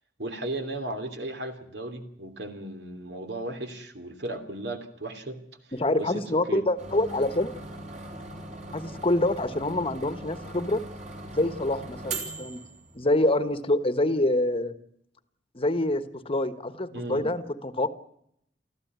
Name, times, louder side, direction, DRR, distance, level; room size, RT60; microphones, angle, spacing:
voice 1, 0.2-5.4 5.6-6.2 6.5-6.6 16.9-17.3, right 1 dB, 70° right, 6 dB, 3.1 m, -35 dB
voice 2, 5.7-7.5 8.7-10.8 11.3-12.6 12.9-14.7 15.5-17.9, left 1 dB, 30° left, 11 dB, 1.3 m, -26 dB
sound 1, 6.8-13.3, right 2 dB, 45° right, 4.4 m, -40 dB
25.0 x 14.5 x 9.5 m, 0.74 s
head